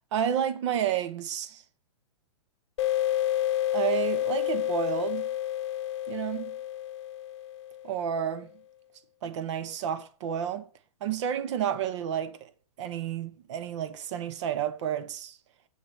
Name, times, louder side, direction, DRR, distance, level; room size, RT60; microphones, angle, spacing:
voice 1, 0.1-1.6 3.7-5.3 6.1-6.5 7.8-8.5 9.2-10.7 11.0-12.5 12.8-15.4, right 9 dB, 55° right, 1.1 m, -30 dB
sound 1, 2.8-8.1, left 13 dB, 50° left, 0.8 m, -30 dB
8.3 x 3.9 x 6.1 m
hypercardioid pair, 155°, 19 cm